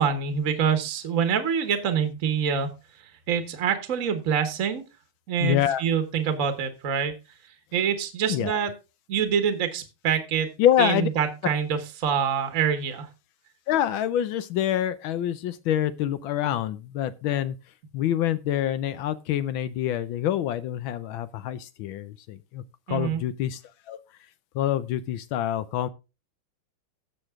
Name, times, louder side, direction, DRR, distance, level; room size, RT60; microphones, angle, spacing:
voice 1, 0.0-2.7 3.3-4.8 5.3-7.1 7.7-8.7 9.1-10.5 10.8-13.1 22.9-23.2, right 7 dB, 45° right, 1.3 m, -25 dB
voice 2, 5.4-5.8 8.3-8.6 10.6-11.1 13.7-17.6 17.9-22.6 22.9-23.6 23.9-24.0 24.5-25.9, left 11 dB, 75° left, 1.4 m, -26 dB
15.5 x 6.4 x 3.6 m
omnidirectional pair, 2.4 m